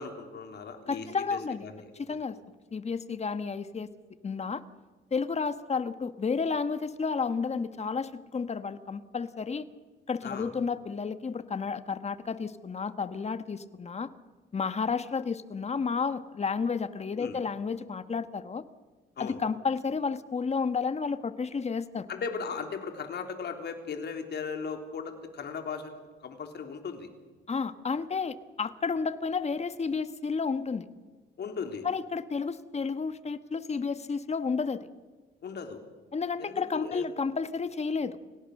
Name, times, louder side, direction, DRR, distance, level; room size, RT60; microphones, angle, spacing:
voice 1, 0.0-2.2 10.2-10.5 17.2-17.4 19.2-19.4 22.1-27.1 31.4-31.9 35.4-35.8 36.4-37.0, left 5 dB, 55° left, 5 dB, 3.5 m, -37 dB
voice 2, 0.9-1.7 1.9-2.4 2.7-3.9 4.2-4.6 5.1-9.7 10.1-14.1 14.5-18.6 19.2-22.1 27.5-30.9 31.8-34.9 36.1-38.2, left 5 dB, 35° left, 11 dB, 1.4 m, -31 dB
29.5 x 17.5 x 6.6 m, 1.3 s
cardioid pair, 90°, 20 cm